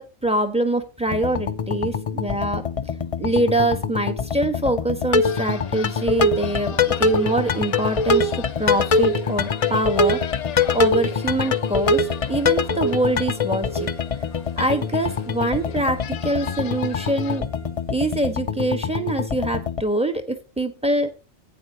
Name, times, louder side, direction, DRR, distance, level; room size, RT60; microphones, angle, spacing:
voice 1, 0.0-2.6 3.2-10.2 10.7-13.9 14.6-17.4 17.9-21.1, right 1 dB, 5° right, 8 dB, 1.3 m, -24 dB
sound 1, 1.1-19.8, left 4 dB, 45° left, 0.4 m, -24 dB
sound 2, 5.1-17.9, equal, 60° right, 3.2 m, -48 dB
sound 3, 5.2-17.4, left 9 dB, 70° left, 1.0 m, -40 dB
15.5 x 9.2 x 2.9 m, 0.29 s
omnidirectional pair, 1.3 m